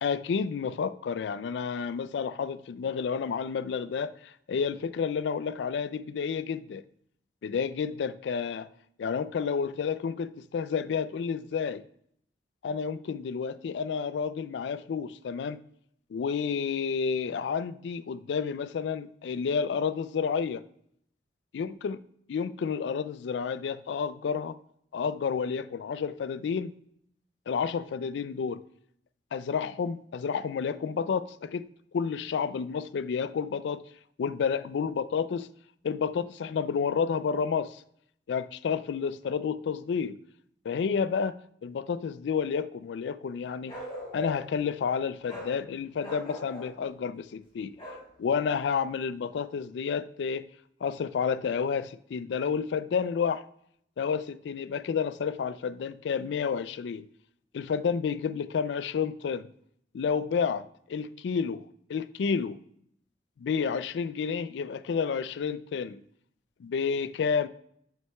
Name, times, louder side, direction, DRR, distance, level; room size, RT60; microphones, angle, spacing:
voice 1, 0.0-4.2 4.5-6.8 7.4-8.7 9.0-11.8 12.6-15.6 16.1-20.6 21.5-22.0 22.3-24.6 24.9-26.7 27.5-28.6 29.3-31.7 31.9-33.8 34.2-35.5 35.8-37.8 38.3-40.2 40.7-43.8 44.1-47.8 48.2-50.5 50.8-53.4 54.0-57.0 57.5-59.5 59.9-61.6 61.9-62.6 63.4-66.0 66.6-67.5, left 6 dB, 80° left, 0.3 m, -30 dB
Bark, 43.7-44.6 45.3-45.5 46.0-46.7 47.8-48.1, left 1 dB, 30° left, 2.5 m, -40 dB
8.3 x 7.6 x 2.3 m
head